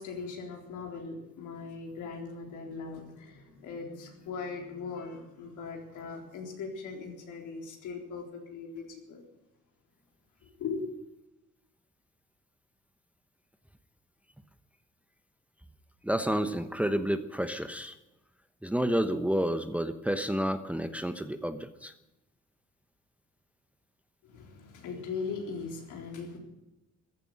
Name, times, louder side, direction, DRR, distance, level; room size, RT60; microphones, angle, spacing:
voice 1, 0.0-9.2 10.4-10.8 24.2-26.4, left 5 dB, 85° left, 1 dB, 3.9 m, -39 dB
voice 2, 16.0-17.9 18.6-21.9, equal, 5° right, 9 dB, 1.0 m, -30 dB
15.0 x 11.0 x 8.5 m, 0.94 s
cardioid pair, 90°, 30 cm